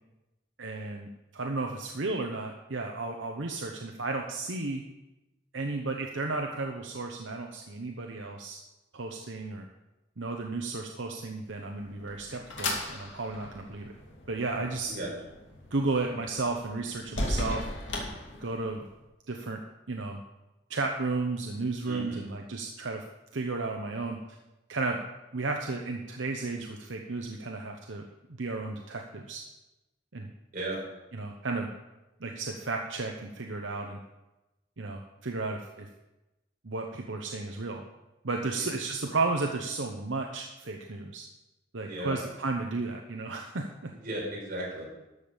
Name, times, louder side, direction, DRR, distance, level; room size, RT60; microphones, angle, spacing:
voice 1, 0.6-4.8 5.5-8.6 8.9-9.7 10.2-13.9 14.3-14.9 15.7-17.7 18.4-18.8 19.3-19.6 19.9-20.2 20.7-23.0 23.3-24.2 24.7-25.0 25.3-28.0 28.3-29.4 30.1-30.3 31.1-31.7 32.2-34.0 34.8-35.9 36.6-37.8 38.2-41.2 41.7-43.9, right 3 dB, 80° right, 2 dB, 0.9 m, -33 dB
sound 1, 11.5-18.9, left 1 dB, 75° left, 2.4 m, -37 dB
voice 2, 21.8-22.2 30.5-30.8 38.5-38.7 41.8-42.2 43.9-44.9, right 1 dB, 50° right, -4 dB, 4.9 m, -35 dB
13.0 x 7.3 x 5.2 m, 1.0 s
head